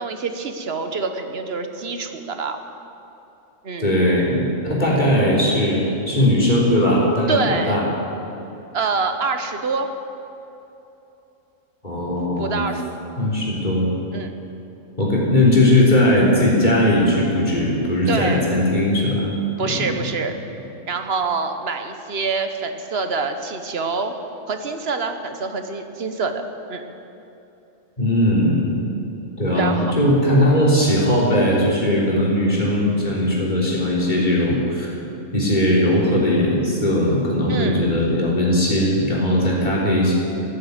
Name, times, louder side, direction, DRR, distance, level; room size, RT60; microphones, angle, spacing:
voice 1, 0.0-2.6 3.6-3.9 7.3-7.8 8.7-9.9 12.4-13.0 14.1-14.3 18.1-18.5 19.6-20.4 20.9-24.1 24.5-26.3 26.7-26.8 29.5-29.9 37.5-37.8, right 4 dB, 55° right, 7 dB, 1.2 m, -26 dB
voice 2, 3.8-7.9 11.8-12.6 13.2-13.9 15.0-19.3 19.6-19.9 28.0-28.7 29.4-34.9 35.3-40.1, left 1 dB, 35° left, -5 dB, 3.7 m, -19 dB
14.5 x 9.5 x 8.1 m, 2.9 s
omnidirectional pair, 1.3 m